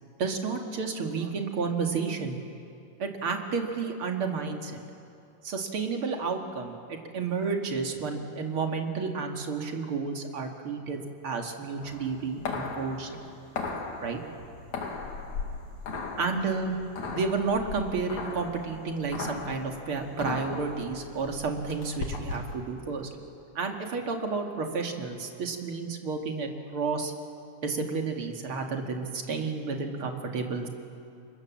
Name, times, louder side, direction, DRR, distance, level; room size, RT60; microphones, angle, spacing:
voice 1, 0.2-2.4 3.0-4.8 5.4-13.2 14.0-14.2 16.2-16.7 17.0-23.1 23.5-27.1 27.6-30.7, right 4 dB, 50° right, 3 dB, 2.8 m, -31 dB
sound 1, 11.8-22.6, left 4 dB, 75° left, 3.7 m, -37 dB
30.0 x 25.5 x 7.5 m, 2.5 s
omnidirectional pair, 3.4 m